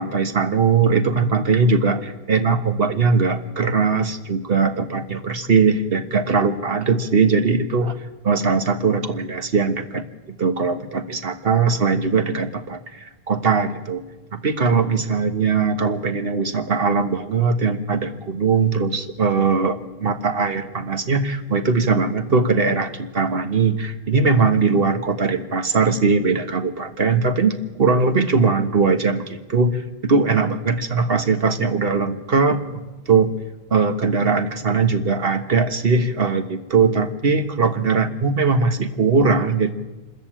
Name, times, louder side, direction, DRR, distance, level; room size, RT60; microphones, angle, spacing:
voice 1, 0.0-7.9 8.2-14.0 14.3-33.3 33.7-39.7, right 4 dB, 70° right, 8 dB, 1.6 m, -20 dB
25.5 x 14.0 x 8.9 m, 1.2 s
omnidirectional pair, 1.0 m